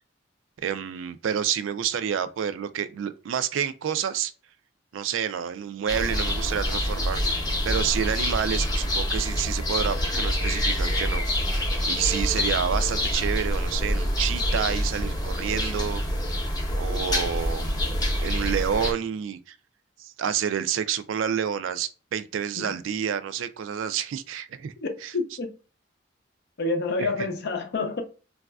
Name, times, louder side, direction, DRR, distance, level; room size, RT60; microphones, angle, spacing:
voice 1, 0.6-4.3 4.9-11.2 11.9-16.0 16.8-19.6 20.0-24.7 25.0-25.1 27.0-27.1, right 8 dB, 85° right, 0.3 m, -29 dB
sound 1, 5.9-18.9, left 1 dB, 20° left, 0.6 m, -26 dB
voice 2, 24.8-25.5 26.6-28.0, left 3 dB, 60° left, 0.6 m, -28 dB
4.0 x 2.4 x 2.2 m
head